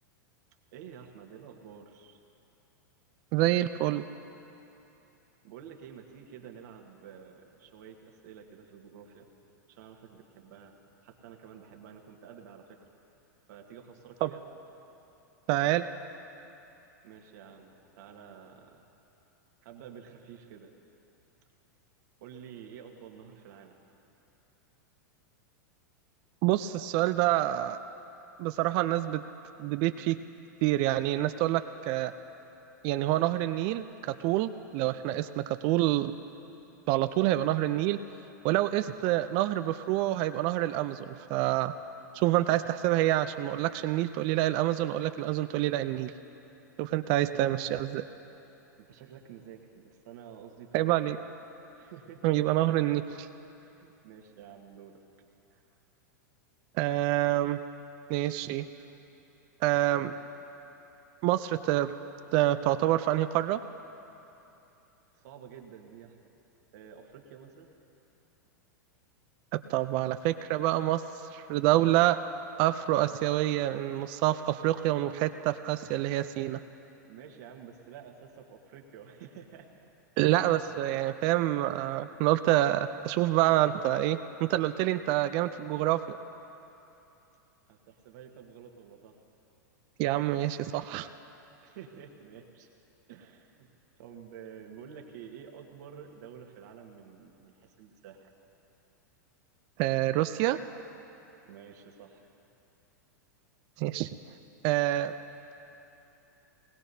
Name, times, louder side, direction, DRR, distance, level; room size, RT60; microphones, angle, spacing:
voice 1, 0.7-2.2 5.4-9.3 9.7-10.8 11.0-12.9 13.5-14.4 17.0-18.8 19.6-20.7 22.2-23.8 47.3-47.4 48.8-51.1 51.7-52.2 53.6-55.0 55.5-55.6 65.1-66.2 66.7-67.7 77.0-79.7 87.7-89.2 91.6-92.7 93.1-93.7 94.0-98.3 101.5-102.3, right 8 dB, 65° right, 2 dB, 1.5 m, -49 dB
voice 2, 3.3-4.0 14.2-14.3 15.5-15.9 26.4-27.8 28.4-29.2 29.6-30.2 30.6-32.1 32.8-36.1 36.9-38.0 38.4-41.7 42.1-46.1 46.8-48.1 50.7-51.2 52.2-53.3 56.7-57.6 58.1-58.7 59.6-60.1 61.2-61.9 62.3-63.6 69.5-72.2 72.6-76.6 80.2-86.2 90.0-91.1 99.8-100.6 103.8-104.1 104.6-105.2, right 15 dB, 50° right, 11 dB, 0.5 m, -27 dB
20.5 x 18.0 x 2.8 m, 2.9 s
hypercardioid pair, 110°, 10 cm